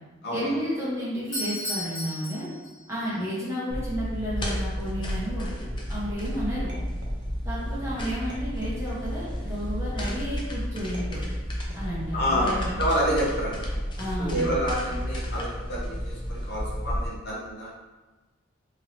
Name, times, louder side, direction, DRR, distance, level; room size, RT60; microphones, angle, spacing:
voice 1, 0.3-2.5 2.9-5.5 5.9-6.7 7.4-11.2 11.7-12.7 14.0-14.6, equal, 15° right, -9 dB, 0.9 m, -32 dB
Doorbell, 1.2-3.1, left 1 dB, 75° left, 1.2 m, -34 dB
sound 1, 3.7-17.1, equal, 25° left, 0.4 m, -32 dB
sound 2, 6.7-7.6 8.3-9.2 10.0-10.5 10.9-12.0 12.5-12.9 13.5-14.1 14.9-15.3, right 1 dB, 65° right, 0.6 m, -48 dB
voice 2, 12.1-13.7 14.2-17.7, equal, 55° left, -5 dB, 0.8 m, -28 dB
3.0 x 2.8 x 2.7 m, 1.2 s
head